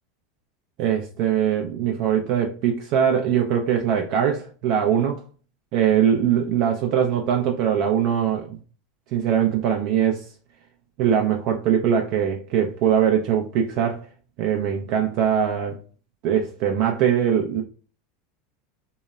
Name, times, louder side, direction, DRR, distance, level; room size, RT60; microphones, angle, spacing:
voice 1, 0.8-5.2 5.7-8.6 9.1-10.3 11.0-14.1 14.4-15.8 16.2-17.6, right 9 dB, 60° right, 0.4 m, -22 dB
2.8 x 2.0 x 2.3 m
hypercardioid pair, 90°, 0 cm